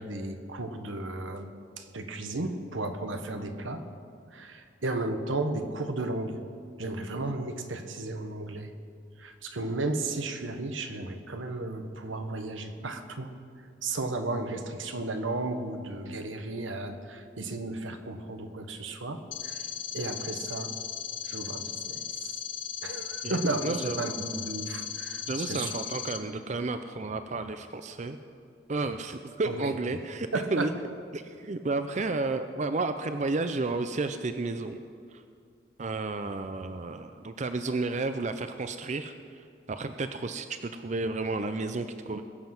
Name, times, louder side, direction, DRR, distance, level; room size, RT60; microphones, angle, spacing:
voice 1, 0.0-3.8 4.3-6.4 6.8-8.7 9.2-13.3 13.8-19.7 19.9-20.7 21.3-22.4 22.8-25.7 29.4-29.7 30.3-30.7, right 2 dB, 85° right, 7 dB, 1.2 m, -34 dB
sound 1, 19.3-26.2, left 9 dB, 90° left, 1.2 m, -37 dB
voice 2, 23.2-24.1 25.3-28.2 28.7-30.7 31.1-34.8 35.1-35.2 35.8-42.2, right 3 dB, 40° right, 9 dB, 0.5 m, -32 dB
21.5 x 7.6 x 6.0 m, 2.3 s
head